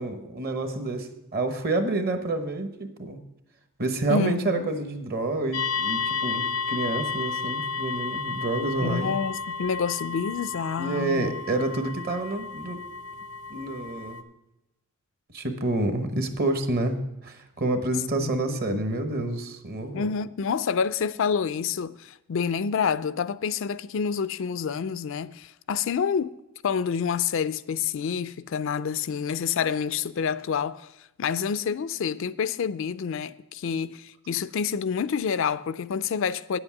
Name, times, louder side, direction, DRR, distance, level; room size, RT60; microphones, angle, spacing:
voice 1, 0.0-3.2 3.8-9.2 10.8-12.8 13.5-14.2 15.3-20.1, right 2 dB, 45° right, 1.0 m, -28 dB
voice 2, 4.1-4.7 8.8-11.4 18.2-18.8 19.9-26.3 26.6-30.9 31.2-36.6, left 6 dB, 60° left, 0.4 m, -28 dB
sound 1, 5.5-14.2, left 5 dB, 90° left, 0.8 m, -32 dB
9.4 x 7.9 x 5.9 m
head